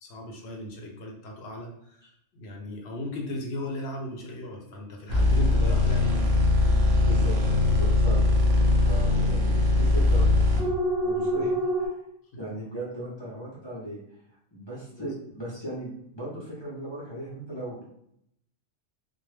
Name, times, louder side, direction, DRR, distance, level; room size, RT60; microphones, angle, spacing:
voice 1, 0.0-6.8 11.1-11.4 12.3-12.4 15.0-15.1, left 1 dB, 65° left, 1 dB, 0.7 m, -37 dB
sound 1, 5.1-11.9, left 2 dB, 60° right, 0.7 m, -22 dB
voice 2, 7.0-7.3 7.6-8.3 8.7-10.3 11.0-12.1 12.4-14.0 14.5-17.9, right 1 dB, 35° left, -7 dB, 0.4 m, -37 dB
2.2 x 2.0 x 3.2 m, 0.73 s
omnidirectional pair, 1.3 m